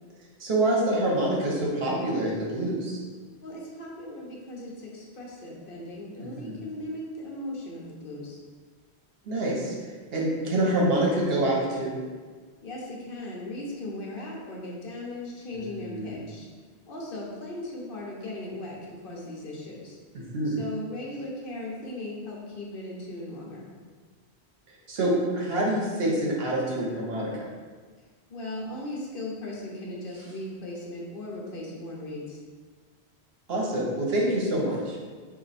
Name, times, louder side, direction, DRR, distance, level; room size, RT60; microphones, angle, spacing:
voice 1, 0.4-3.0 6.2-6.6 9.2-9.7 10.1-12.0 15.6-16.2 20.1-20.6 24.9-27.3 33.5-35.0, right 1 dB, 65° right, -3 dB, 1.1 m, -26 dB
voice 2, 3.4-8.4 12.6-16.5 16.9-20.0 20.4-23.7 28.3-32.4, left 1 dB, 60° left, -3 dB, 1.0 m, -38 dB
4.3 x 2.6 x 4.1 m, 1.5 s
omnidirectional pair, 1.1 m